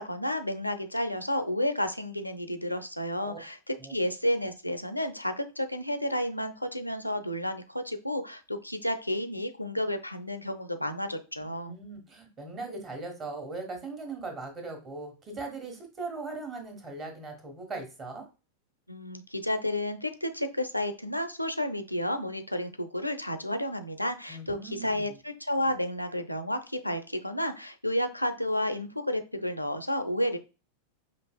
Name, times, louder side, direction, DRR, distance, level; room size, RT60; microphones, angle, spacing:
voice 1, 0.0-3.6 3.9-11.8 18.9-30.4, left 1 dB, 90° left, 8 dB, 0.4 m, -31 dB
voice 2, 11.4-18.2 24.3-25.2, right 3 dB, 25° right, 4 dB, 1.2 m, -39 dB
5.2 x 2.9 x 2.3 m, 0.31 s
figure-of-eight pair, 90°, 0 cm